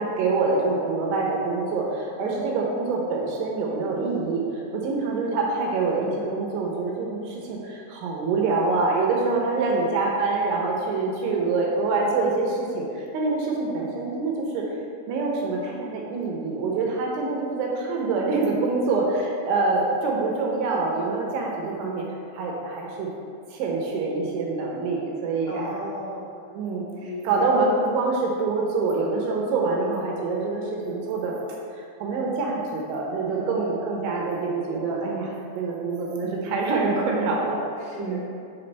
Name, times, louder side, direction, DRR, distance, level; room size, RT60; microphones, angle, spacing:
voice 1, 0.0-4.4 4.7-14.8 15.1-22.1 22.3-23.1 23.5-25.7 26.5-26.8 27.3-31.4 32.0-37.6 38.0-38.2, right 3 dB, 75° right, -2 dB, 3.0 m, -25 dB
voice 2, 2.2-2.5 9.7-10.1 25.5-26.3 27.0-27.6 33.3-33.8 37.7-38.3, left 1 dB, 75° left, -9 dB, 1.8 m, -37 dB
8.3 x 7.0 x 3.3 m, 2.5 s
omnidirectional pair, 5.8 m